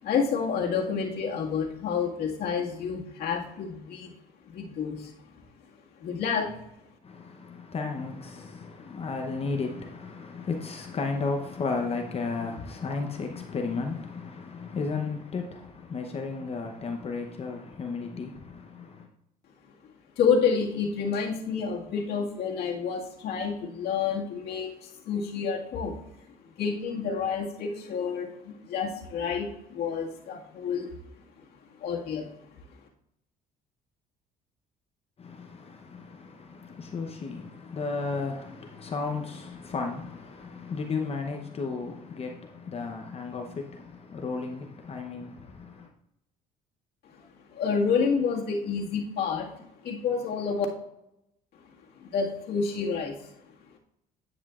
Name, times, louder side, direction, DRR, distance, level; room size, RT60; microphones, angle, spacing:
voice 1, 0.0-4.1 4.5-5.1 6.0-6.6 20.2-26.0 26.6-30.9 31.8-32.3 47.1-47.2 47.5-49.5 49.8-50.7 52.0-53.3, left 6 dB, 70° left, 1.9 m, -29 dB
voice 2, 7.0-19.1 35.2-45.9, left 4 dB, 35° left, 0.8 m, -34 dB
10.5 x 8.1 x 2.5 m
cardioid pair, 110°, 17 cm